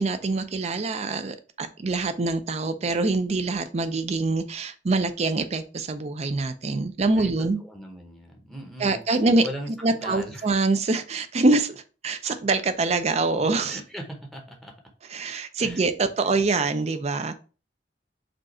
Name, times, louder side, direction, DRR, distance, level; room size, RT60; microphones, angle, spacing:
voice 1, 0.0-7.6 8.8-9.5 9.8-13.8 15.1-17.4, right 3 dB, 35° right, 10 dB, 0.5 m, -25 dB
voice 2, 7.6-9.0 9.4-10.5 13.7-14.7 15.6-15.9, equal, ahead, 1 dB, 0.8 m, -39 dB
5.1 x 2.4 x 4.2 m, 0.35 s
head